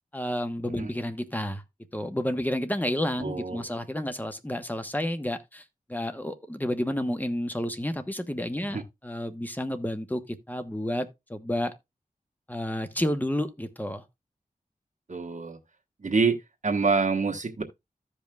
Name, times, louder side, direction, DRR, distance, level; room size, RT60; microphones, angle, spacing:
voice 1, 0.1-1.6 1.9-5.6 5.9-11.7 12.5-14.0, left 1 dB, 10° left, 1.1 m, -30 dB
voice 2, 3.2-3.6 8.7-8.8 15.1-15.6 16.0-17.6, right 4 dB, 55° right, 1.3 m, -26 dB
15.0 x 5.4 x 2.3 m
wide cardioid pair, 70°, 15 cm